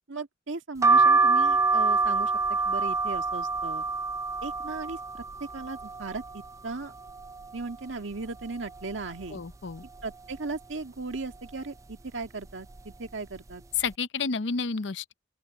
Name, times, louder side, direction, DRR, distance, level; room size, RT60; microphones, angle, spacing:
voice 1, 0.1-3.9 4.4-5.2 5.5-6.9 7.5-9.4 10.0-13.6, right 3 dB, 90° right, 1.7 m, -37 dB
sound 1, 0.8-6.5 6.9-7.7 8.1-8.2 8.4-9.5 10.0-10.4 11.1-11.5 12.2-12.5 12.7-12.9, right 3 dB, 15° right, 0.4 m, -26 dB
voice 2, 9.3-9.8 13.8-15.1, left 5 dB, 70° left, 0.7 m, -31 dB
open air
head